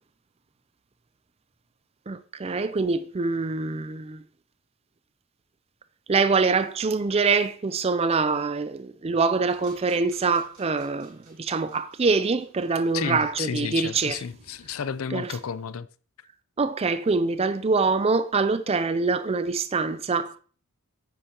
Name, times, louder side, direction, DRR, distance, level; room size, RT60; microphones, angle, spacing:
voice 1, 2.1-4.2 6.1-14.2 15.1-15.4 16.6-20.4, right 4 dB, 25° right, 0.4 m, -24 dB
sound 1, 9.5-15.0, right 2 dB, 65° right, 3.9 m, -56 dB
voice 2, 12.9-15.9, left 7 dB, 65° left, 0.5 m, -32 dB
10.0 x 8.7 x 2.9 m
head